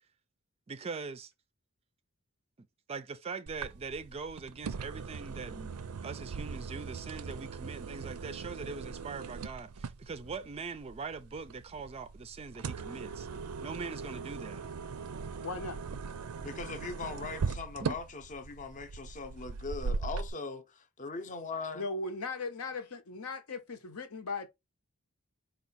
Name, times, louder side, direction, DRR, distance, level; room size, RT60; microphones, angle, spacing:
voice 1, 0.7-1.3 2.9-5.7 6.0-13.3 13.6-14.6 17.8-18.0, right 4 dB, 30° right, 0.4 m, -42 dB
sound 1, 3.5-20.3, right 5 dB, 90° right, 0.5 m, -40 dB
voice 2, 15.4-15.8 21.7-24.5, left 3 dB, 80° left, 0.9 m, -38 dB
voice 3, 16.4-21.9, left 4 dB, 35° left, 0.6 m, -40 dB
4.6 x 2.3 x 4.0 m
head